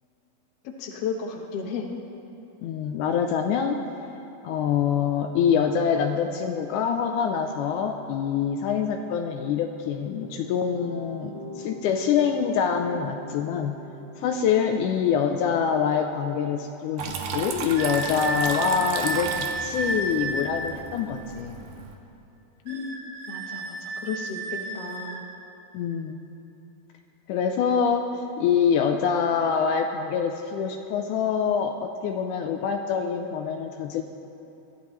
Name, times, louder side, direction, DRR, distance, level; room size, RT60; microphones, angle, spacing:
voice 1, 0.6-1.9 14.7-14.8 22.6-23.0 23.3-25.2, left 5 dB, 60° left, 1 dB, 1.7 m, -33 dB
voice 2, 2.6-3.8 4.4-13.8 14.2-21.6 25.7-26.2 27.3-34.0, left 7 dB, 90° left, 4 dB, 1.8 m, -25 dB
sound 1, 9.9-18.7, equal, 15° right, 1.6 m, -46 dB
Water tap faucet / Trickle dribble, 17.0-22.0, right 5 dB, 80° right, 2.8 m, -34 dB
sound 2, 17.8-20.5 22.7-25.2, right 2 dB, 60° right, 2.6 m, -32 dB
22.5 x 13.5 x 3.2 m, 2.9 s
omnidirectional pair, 4.3 m